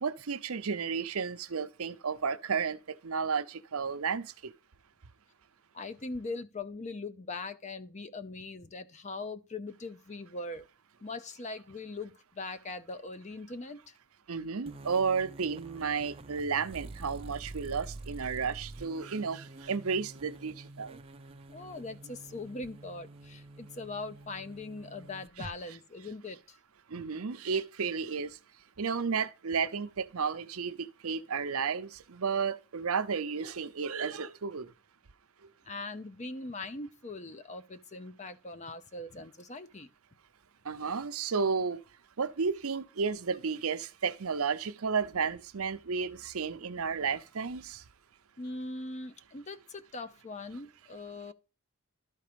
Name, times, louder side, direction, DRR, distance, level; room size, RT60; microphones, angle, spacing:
voice 1, 0.0-4.5 14.3-21.0 26.9-28.4 28.8-34.7 40.6-41.8 42.2-47.8, right 5 dB, 80° right, 0.7 m, -32 dB
voice 2, 5.7-10.7 11.0-13.9 21.5-26.6 26.9-27.1 35.6-39.9 48.4-51.3, left 3 dB, 30° left, 0.7 m, -41 dB
sound 1, 14.7-25.5, right 2 dB, 25° right, 0.5 m, -47 dB
12.5 x 4.2 x 5.1 m
head